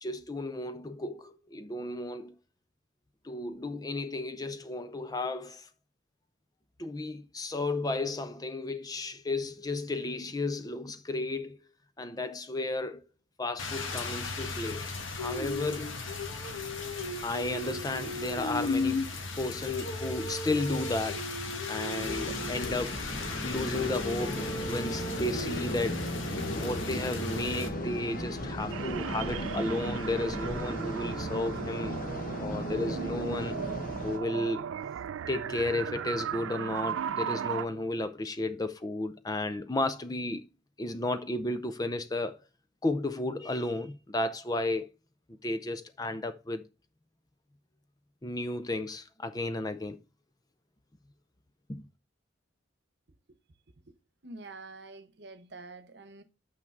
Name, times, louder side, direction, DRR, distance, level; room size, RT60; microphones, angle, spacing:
voice 1, 0.0-2.3 3.2-5.7 6.8-11.6 12.0-13.0 13.4-16.0 17.2-19.1 19.4-21.2 21.7-23.0 23.4-26.1 26.6-32.0 32.4-33.6 34.0-34.6 35.3-40.5 40.8-42.4 42.8-44.9 45.3-46.6 48.2-50.0 51.7-51.8, left 2 dB, 20° left, 0.5 m, -33 dB
Rain, 13.6-27.7, left 3 dB, 80° left, 1.5 m, -35 dB
sound 1, 22.0-34.2, equal, 45° left, 1.3 m, -36 dB
sound 2, 28.7-37.7, right 8 dB, 80° right, 0.3 m, -37 dB
voice 2, 54.2-56.2, right 3 dB, 60° right, 1.0 m, -47 dB
6.4 x 6.1 x 4.5 m
head